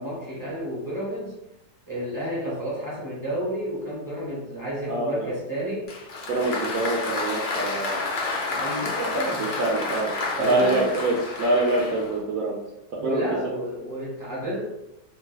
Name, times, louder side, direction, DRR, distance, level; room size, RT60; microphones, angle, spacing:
voice 1, 0.0-1.3 1.9-5.9 8.5-9.4 10.4-10.9 12.9-14.7, equal, 15° right, -6 dB, 0.7 m, -31 dB
voice 2, 4.9-5.3 6.3-8.0 9.1-10.1 10.4-12.6 12.9-13.2, right 2 dB, 70° right, -2 dB, 0.8 m, -25 dB
Applause, 5.9-12.2, left 3 dB, 80° left, 0.5 m, -30 dB
3.2 x 2.2 x 3.1 m, 0.88 s
omnidirectional pair, 1.9 m